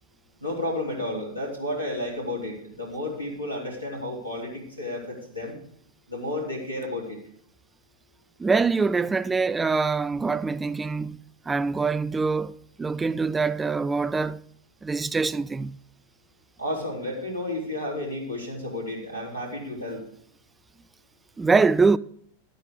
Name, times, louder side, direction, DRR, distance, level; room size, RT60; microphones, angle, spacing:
voice 1, 0.4-5.6 6.1-7.2 16.6-20.0, left 1 dB, 90° left, 4.1 m, -32 dB
voice 2, 8.4-11.2 11.5-14.4 14.8-15.8 21.4-22.0, right 4 dB, 15° right, 0.3 m, -24 dB
11.5 x 9.2 x 4.9 m
figure-of-eight pair, 90°, 0 cm